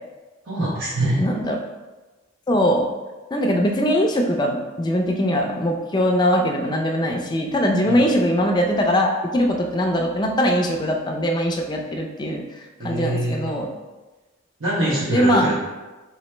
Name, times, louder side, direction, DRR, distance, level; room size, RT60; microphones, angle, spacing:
voice 1, 0.5-1.2 7.8-8.1 12.8-13.6 14.6-15.6, right 1 dB, 85° right, -9 dB, 1.0 m, -24 dB
voice 2, 1.2-1.6 2.5-2.9 3.3-12.4 12.8-13.7 14.8-15.6, equal, 20° left, 2 dB, 0.4 m, -21 dB
4.6 x 3.0 x 3.2 m, 1.2 s
head